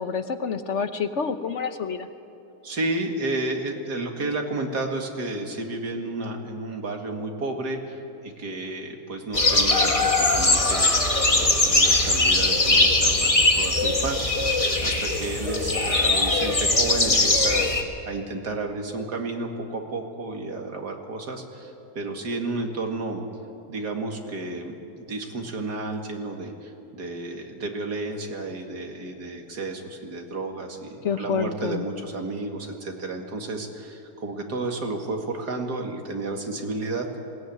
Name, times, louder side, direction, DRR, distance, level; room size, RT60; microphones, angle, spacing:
voice 1, 0.0-2.1 31.0-31.8, left 6 dB, 50° left, 9 dB, 1.1 m, -28 dB
voice 2, 2.6-23.2 23.7-37.2, right 2 dB, 80° right, 2 dB, 2.6 m, -32 dB
sound 1, 9.3-17.8, left 2 dB, 20° left, 1.6 m, -21 dB
21.0 x 17.5 x 9.5 m, 2.8 s
omnidirectional pair, 1.7 m